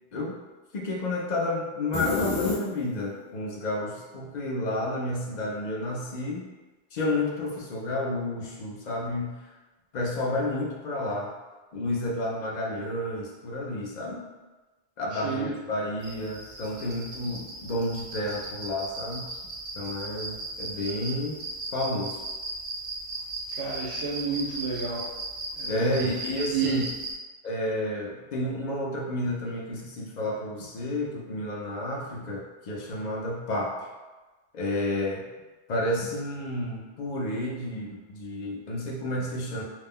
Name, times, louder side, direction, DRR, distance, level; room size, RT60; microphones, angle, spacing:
voice 1, 0.7-6.5 6.9-9.4 9.9-11.3 11.7-14.2 15.0-19.3 19.8-21.4 21.7-22.2 25.7-26.9 27.4-33.8 34.5-35.2 35.7-39.6, left 1 dB, 55° left, -2 dB, 0.5 m, -31 dB
sound 1, 1.9-3.2, left 3 dB, 85° left, 0.9 m, -28 dB
sound 2, 16.0-27.1, right 2 dB, 50° right, 0.5 m, -37 dB
voice 2, 23.6-25.0 25.5-25.8 26.5-26.8, right 6 dB, 90° right, -6 dB, 1.0 m, -30 dB
2.4 x 2.0 x 3.6 m, 1.2 s
omnidirectional pair, 1.1 m